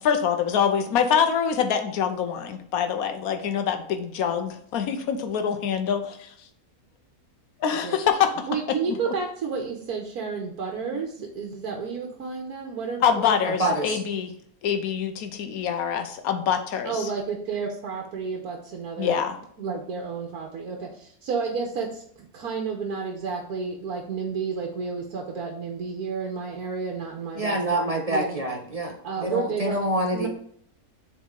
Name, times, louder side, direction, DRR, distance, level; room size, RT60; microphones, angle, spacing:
voice 1, 0.0-6.3 7.6-8.5 9.1-9.2 13.0-14.3 14.6-16.9 19.0-19.4, left 7 dB, 75° left, 6 dB, 1.3 m, -25 dB
voice 2, 8.5-13.4 16.8-19.2 19.6-28.4 29.0-29.8 30.1-30.3, right 5 dB, 90° right, 1 dB, 1.5 m, -31 dB
voice 3, 13.4-14.0 27.3-30.3, right 1 dB, 30° right, 1 dB, 0.9 m, -26 dB
7.3 x 4.1 x 3.8 m, 0.63 s
omnidirectional pair, 1.6 m